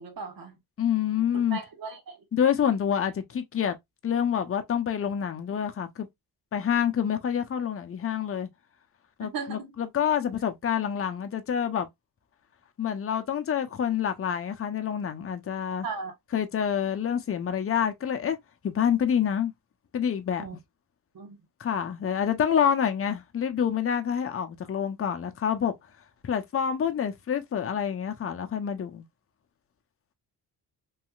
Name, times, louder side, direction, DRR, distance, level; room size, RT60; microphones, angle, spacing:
voice 1, 0.0-0.6 1.5-2.2 9.2-9.7 15.8-16.1 20.4-20.6 21.1-21.4, right 5 dB, 60° right, 1.3 m, -37 dB
voice 2, 0.8-1.6 2.3-3.7 4.0-6.1 6.5-8.5 9.2-11.9 12.8-15.9 16.3-18.4 18.6-19.5 19.9-20.5 21.6-25.7 26.2-29.0, left 8 dB, 35° left, 0.7 m, -27 dB
3.1 x 2.8 x 2.3 m
cardioid pair, 75°, 40 cm